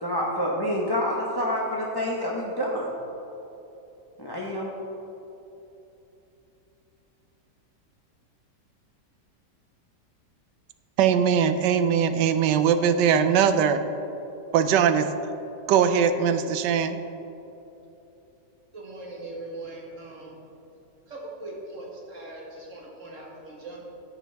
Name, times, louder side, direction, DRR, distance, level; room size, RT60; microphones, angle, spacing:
voice 1, 0.0-2.9 4.2-4.7, equal, 15° left, 0.9 m, -27 dB
voice 2, 11.0-13.8 14.5-15.1 15.7-17.0, right 7 dB, 85° right, 1.2 m, -21 dB
voice 3, 18.7-20.4 21.1-23.8, right 2 dB, 50° right, 1.8 m, -40 dB
16.0 x 6.1 x 3.4 m
omnidirectional pair, 1.8 m